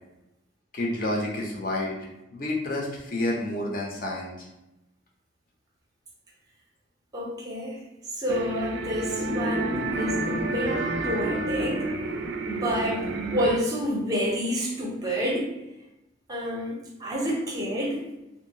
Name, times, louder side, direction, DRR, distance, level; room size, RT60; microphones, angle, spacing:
voice 1, 0.7-2.1 2.3-4.5, left 1 dB, 45° left, -2 dB, 0.6 m, -29 dB
voice 2, 7.1-7.9 8.2-11.9 12.5-15.5 16.3-18.0, equal, 20° right, -2 dB, 0.6 m, -29 dB
sound 1, 8.3-13.6, right 2 dB, 65° right, 0.3 m, -29 dB
2.6 x 2.2 x 2.7 m, 0.93 s
head